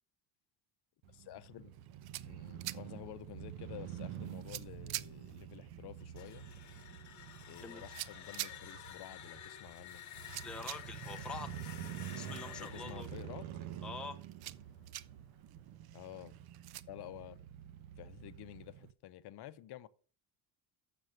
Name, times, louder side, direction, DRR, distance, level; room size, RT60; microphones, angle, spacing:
Crow / Motorcycle, 1.0-18.9, right 11 dB, 85° right, 0.9 m, -48 dB
voice 1, 1.1-1.7 2.3-6.5 7.5-10.0 12.6-13.5 15.9-16.3 16.9-17.4 18.0-19.9, left 13 dB, 60° left, 0.7 m, -50 dB
sound 1, 1.7-16.8, right 14 dB, 55° right, 0.5 m, -50 dB
sound 2, 6.0-14.8, left 11 dB, 40° left, 1.0 m, -52 dB
voice 2, 10.4-11.5 12.1-13.1 13.8-14.2, left 3 dB, ahead, 0.5 m, -45 dB
6.9 x 6.6 x 7.5 m
cardioid pair, 170°, 46 cm